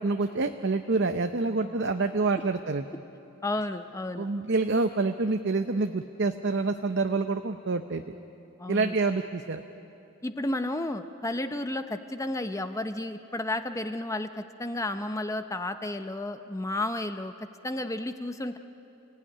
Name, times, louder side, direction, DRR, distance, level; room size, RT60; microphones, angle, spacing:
voice 1, 0.0-2.8 4.2-8.1 8.7-9.6, right 3 dB, 55° right, 7 dB, 0.7 m, -27 dB
voice 2, 3.4-4.3 8.6-9.0 10.2-18.6, left 1 dB, 15° left, 9 dB, 0.7 m, -32 dB
29.5 x 16.5 x 10.0 m, 2.9 s
head